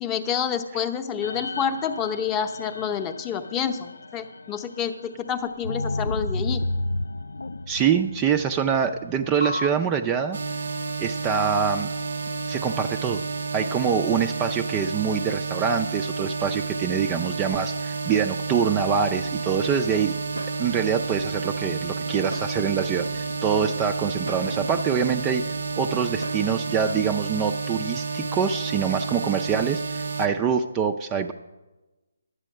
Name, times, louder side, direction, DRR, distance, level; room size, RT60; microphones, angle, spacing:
voice 1, 0.0-6.6, left 7 dB, 20° left, 7 dB, 0.7 m, -28 dB
sound 1, 1.2-4.9 5.6-9.7, left 2 dB, 75° left, 0.3 m, -32 dB
voice 2, 7.7-10.4 11.0-11.9 12.5-13.2 13.5-20.1 20.6-25.4 25.8-31.3, right 7 dB, 20° right, 6 dB, 0.4 m, -25 dB
sound 2, 10.3-30.3, right 4 dB, 65° right, 0.7 m, -31 dB
sound 3, 18.7-26.5, equal, 90° right, 1.0 m, -40 dB
11.0 x 8.2 x 6.5 m, 1.1 s
figure-of-eight pair, 150°, 0 cm